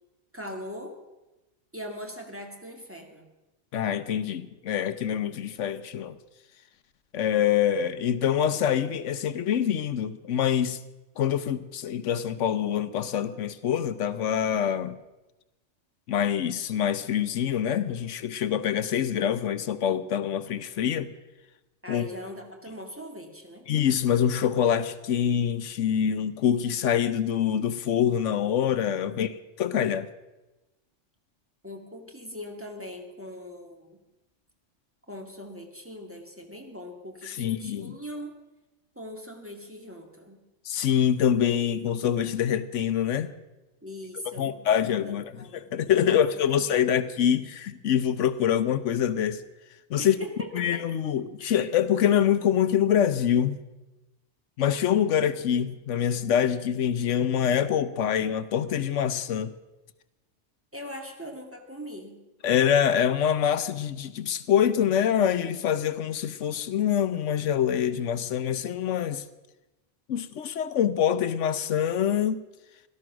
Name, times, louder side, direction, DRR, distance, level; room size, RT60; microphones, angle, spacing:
voice 1, 0.3-1.0 1.7-3.3 21.8-23.7 29.0-29.4 31.6-34.0 35.1-38.3 39.0-40.4 43.8-44.6 45.1-45.7 46.0-46.9 50.0-50.8 51.4-51.6 60.7-62.2, left 1 dB, 10° right, 2.1 m, -41 dB
voice 2, 3.7-6.2 7.1-10.8 11.2-15.0 16.1-21.1 21.9-22.1 23.7-30.1 37.2-38.0 40.6-43.3 44.3-45.2 45.5-49.4 49.9-50.2 50.5-53.6 54.6-59.5 62.4-69.2 70.1-72.4, left 9 dB, 80° left, 1.1 m, -25 dB
17.0 x 12.5 x 6.1 m
omnidirectional pair, 1.2 m